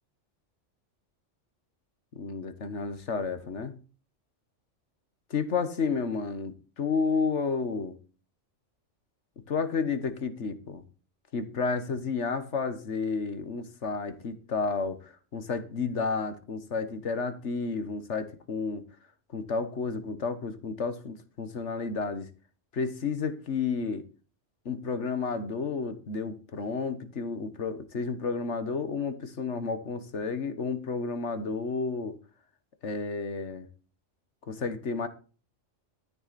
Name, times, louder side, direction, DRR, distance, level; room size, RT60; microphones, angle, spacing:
voice 1, 2.2-3.7 5.3-8.0 9.5-10.8 11.3-18.8 19.3-22.3 22.7-24.0 24.7-32.2 32.8-33.7 34.5-35.1, left 4 dB, 70° left, 1.7 m, -31 dB
13.0 x 9.5 x 4.3 m
omnidirectional pair, 1.2 m